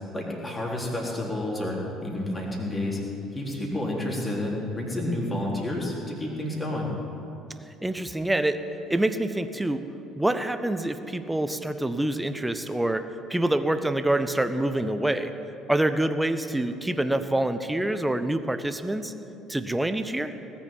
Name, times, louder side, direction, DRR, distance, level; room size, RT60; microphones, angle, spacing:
voice 1, 0.1-3.0 3.3-6.9, left 1 dB, 20° left, -3 dB, 3.8 m, -30 dB
voice 2, 7.7-8.6 8.9-9.9 10.2-15.3 15.7-19.1 19.5-20.3, right 1 dB, 10° right, 10 dB, 0.8 m, -26 dB
19.0 x 7.3 x 9.2 m, 2.9 s
figure-of-eight pair, 55°, 0 cm